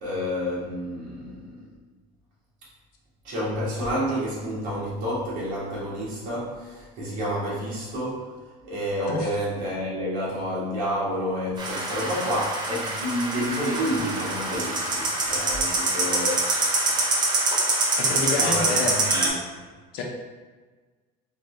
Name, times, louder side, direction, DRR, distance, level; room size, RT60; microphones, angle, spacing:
voice 1, 0.0-1.7 3.2-8.3 8.6-16.5 16.9-17.1 18.4-19.4, equal, 55° right, -7 dB, 1.4 m, -29 dB
sound 1, 11.6-19.3, right 2 dB, 25° right, 0.5 m, -25 dB
voice 2, 18.0-18.9 19.9-20.0, left 3 dB, 65° left, 0 dB, 0.7 m, -28 dB
3.7 x 2.3 x 3.0 m, 1.3 s
cardioid pair, 160°, 17 cm